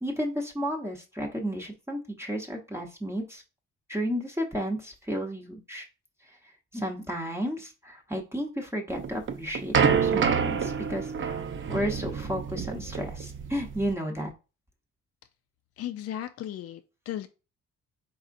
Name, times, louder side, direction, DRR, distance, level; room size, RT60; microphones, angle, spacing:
voice 1, 0.0-3.4 3.9-5.9 6.7-14.3, equal, 10° right, 0 dB, 0.8 m, -33 dB
sound 1, 9.0-13.9, right 6 dB, 40° right, 0.6 m, -27 dB
voice 2, 15.8-17.3, left 11 dB, 55° left, 8 dB, 0.4 m, -36 dB
4.2 x 3.7 x 2.5 m, 0.31 s
cardioid pair, 90°, 30 cm